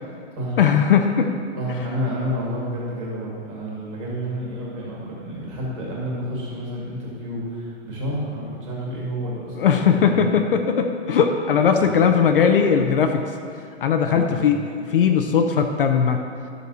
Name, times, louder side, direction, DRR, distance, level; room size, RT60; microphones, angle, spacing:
voice 1, 0.6-1.3 9.6-13.2 13.8-14.6 14.9-16.2, left 7 dB, 50° left, 5 dB, 0.6 m, -18 dB
voice 2, 1.5-10.2 11.8-12.1 14.1-14.4, equal, 30° right, -4 dB, 2.2 m, -30 dB
12.0 x 6.6 x 4.0 m, 2.3 s
hypercardioid pair, 180°, 35 cm